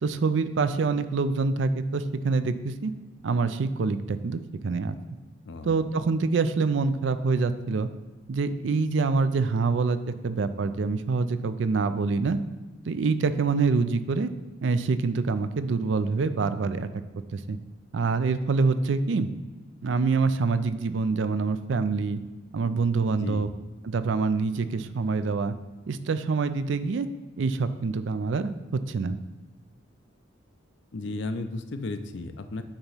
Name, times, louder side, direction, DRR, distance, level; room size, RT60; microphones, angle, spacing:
voice 1, 0.0-2.9 3.2-4.9 5.6-7.9 8.3-12.4 12.9-14.3 14.6-16.9 17.3-17.6 17.9-19.3 19.8-22.2 22.5-23.5 23.8-25.6 25.9-27.1 27.4-29.2, right 4 dB, 65° right, 12 dB, 0.4 m, -26 dB
voice 2, 5.4-5.8 23.1-23.5 30.9-32.6, left 2 dB, 60° left, 9 dB, 0.5 m, -34 dB
8.7 x 3.0 x 5.6 m, 1.3 s
head